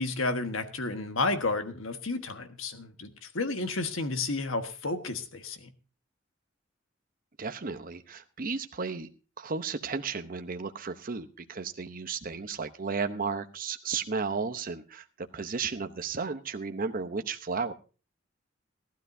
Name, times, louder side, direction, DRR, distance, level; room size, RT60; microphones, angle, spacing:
voice 1, 0.0-5.7, left 3 dB, 90° left, 7 dB, 1.5 m, -31 dB
voice 2, 7.4-9.1 9.4-17.7, right 5 dB, 45° right, 8 dB, 0.8 m, -34 dB
17.5 x 12.5 x 2.7 m, 0.34 s
head